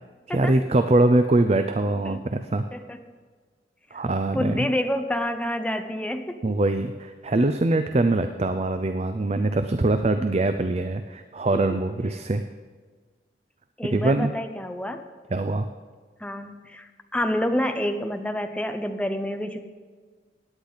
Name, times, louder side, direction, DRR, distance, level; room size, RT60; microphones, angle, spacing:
voice 1, 0.3-2.6 3.9-4.7 6.4-12.4 13.9-14.3 15.3-15.7, right 2 dB, 35° right, 9 dB, 0.5 m, -23 dB
voice 2, 2.7-3.0 3.9-4.0 4.3-6.4 10.2-10.3 11.5-11.6 13.8-15.0 16.2-19.6, left 1 dB, 5° left, 7 dB, 0.7 m, -28 dB
17.0 x 10.0 x 4.1 m, 1.5 s
head